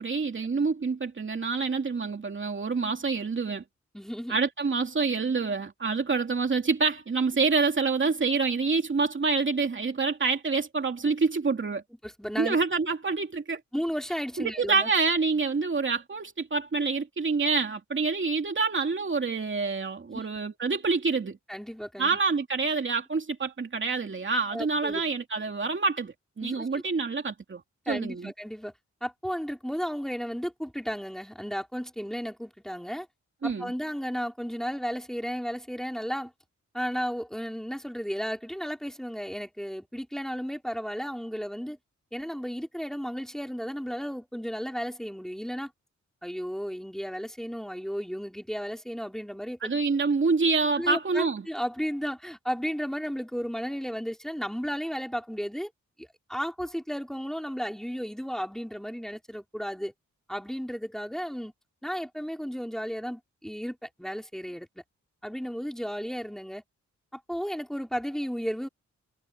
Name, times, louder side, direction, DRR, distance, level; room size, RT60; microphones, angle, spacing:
voice 1, 0.0-3.6 4.3-11.8 12.4-13.6 14.6-21.4 22.0-27.6 27.9-28.3 33.4-33.7 49.6-51.4, right 4 dB, 40° right, 2.8 m, -27 dB
voice 2, 3.9-4.4 12.0-12.6 13.7-14.9 20.1-20.3 21.5-22.2 24.5-25.0 26.4-26.7 27.9-28.7 29.0-33.1 33.4-36.3 36.7-41.8 42.1-45.7 46.2-49.7 50.7-55.7 56.0-59.9 60.3-61.5 61.8-64.7 65.2-66.6 67.1-68.7, equal, ahead, 3.8 m, -34 dB
wide cardioid pair, 125°, 29 cm